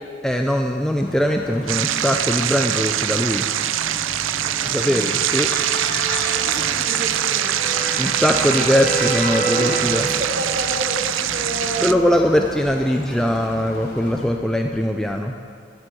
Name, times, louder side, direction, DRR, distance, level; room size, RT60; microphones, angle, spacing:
voice 1, 0.2-3.5 4.7-5.5 8.0-10.0 11.8-15.3, equal, 5° left, 3 dB, 0.4 m, -21 dB
sound 1, 0.9-14.3, left 1 dB, 60° left, 3.1 m, -36 dB
sound 2, 1.7-11.9, right 12 dB, 80° right, 0.4 m, -23 dB
sound 3, 4.1-10.3, right 1 dB, 40° left, 1.7 m, -29 dB
voice 2, 4.4-5.1 6.0-8.5 9.3-12.1 12.3-12.4 12.8-12.9, right 1 dB, 50° right, -2 dB, 2.5 m, -31 dB
11.0 x 9.2 x 7.7 m, 2.1 s
head